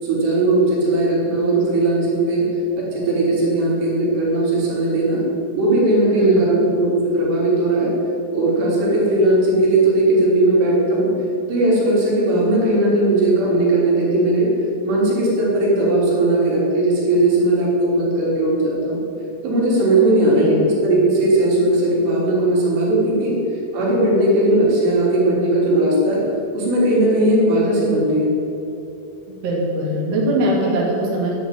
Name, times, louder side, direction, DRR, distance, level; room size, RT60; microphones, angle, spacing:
voice 1, 0.0-2.5 2.8-5.2 5.5-7.9 8.3-11.1 11.5-14.5 14.8-19.0 19.4-23.4 23.7-26.2 26.5-28.4, right 1 dB, 75° right, -5 dB, 5.6 m, -18 dB
voice 2, 6.1-6.6 20.3-20.6 29.4-31.3, right 1 dB, 40° right, -4 dB, 3.3 m, -21 dB
11.5 x 10.0 x 9.2 m, 2.8 s
omnidirectional pair, 4.9 m